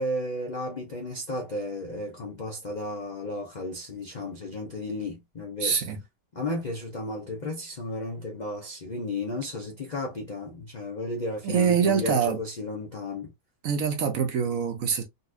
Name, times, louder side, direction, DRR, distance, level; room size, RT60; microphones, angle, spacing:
voice 1, 0.0-5.8 6.3-13.3, left 1 dB, 80° left, 0.4 m, -33 dB
voice 2, 5.6-6.0 11.4-12.4 13.6-15.0, right 7 dB, 60° right, 1.0 m, -24 dB
4.0 x 2.4 x 2.4 m
omnidirectional pair, 1.9 m